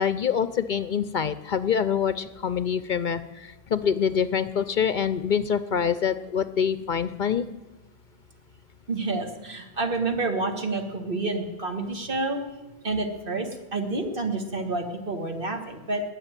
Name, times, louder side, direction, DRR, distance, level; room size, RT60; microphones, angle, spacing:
voice 1, 0.0-7.5, left 7 dB, 55° left, 13 dB, 0.7 m, -25 dB
voice 2, 8.9-12.4 12.8-16.0, right 3 dB, 60° right, 4 dB, 2.0 m, -29 dB
20.0 x 7.3 x 9.0 m, 1.1 s
omnidirectional pair, 1.1 m